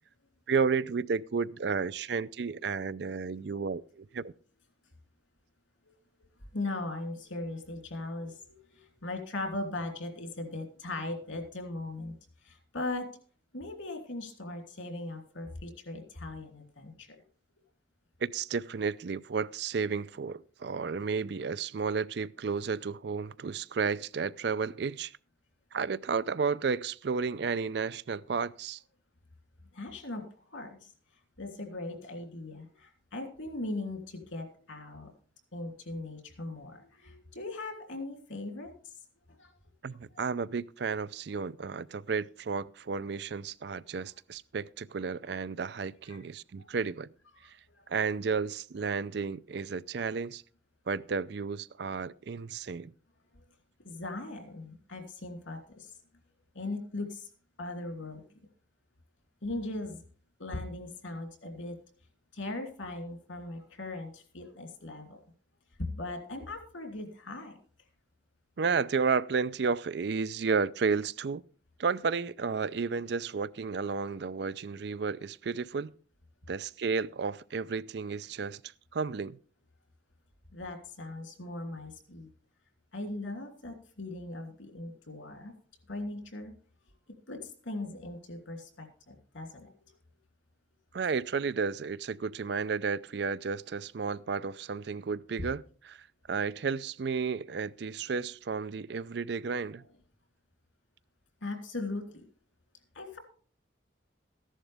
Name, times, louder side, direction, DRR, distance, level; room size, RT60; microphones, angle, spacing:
voice 1, 0.5-4.3 18.2-25.2 25.7-28.8 39.8-47.1 47.4-47.6 47.9-50.4 50.9-52.9 68.6-71.4 71.8-75.9 76.5-79.4 90.9-99.8, right 5 dB, 60° right, 0.4 m, -32 dB
voice 2, 6.5-12.1 12.4-13.1 13.5-17.2 29.7-30.9 31.4-35.1 35.5-38.7 39.3-39.5 40.1-40.2 44.0-44.1 46.1-46.2 46.6-46.7 47.4-47.9 53.3-53.4 53.8-55.9 56.5-57.3 57.6-58.2 59.4-60.0 60.4-61.8 62.3-65.2 65.8-67.6 80.5-82.3 82.9-85.5 85.9-86.5 87.3-89.7 101.4-102.2 102.9-103.2, left 2 dB, 90° left, 2.9 m, -39 dB
14.5 x 11.0 x 3.4 m
head